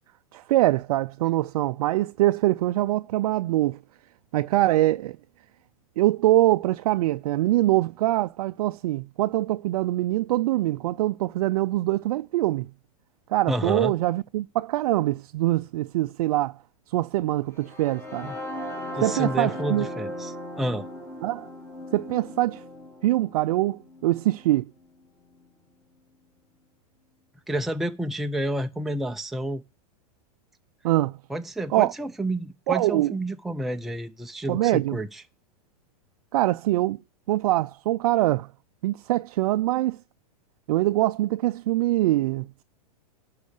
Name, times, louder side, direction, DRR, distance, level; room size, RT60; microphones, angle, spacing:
voice 1, 0.3-3.8 4.3-5.2 6.0-12.7 13.3-16.5 16.9-18.3 19.0-19.9 21.2-21.5 21.9-22.6 23.0-24.7 30.8-31.2 31.7-31.9 32.7-33.1 34.5-35.0 36.3-37.0 37.3-38.5 38.8-40.0 40.7-42.6, right 16 dB, 65° right, 0.4 m, -23 dB
voice 2, 13.5-13.9 18.2-18.4 18.9-20.9 27.5-29.6 31.3-35.2, right 1 dB, ahead, 0.5 m, -30 dB
sound 1, 17.6-25.5, left 1 dB, 15° left, 2.9 m, -38 dB
11.5 x 4.8 x 6.5 m
hypercardioid pair, 120°, 20 cm